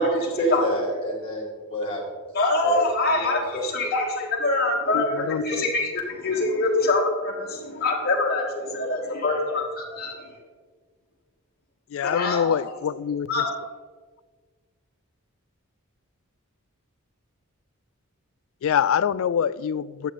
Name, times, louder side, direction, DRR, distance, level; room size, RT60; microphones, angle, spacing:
voice 1, 0.0-2.2 2.6-2.9 3.2-3.7, right 1 dB, 30° left, -9 dB, 2.3 m, -27 dB
voice 2, 2.3-10.4 12.0-12.5 13.3-13.5, left 2 dB, 45° left, -3 dB, 1.7 m, -25 dB
voice 3, 4.9-5.4 11.9-13.4 18.6-20.1, left 8 dB, 65° left, 19 dB, 0.3 m, -25 dB
10.5 x 7.8 x 4.2 m, 1.5 s
head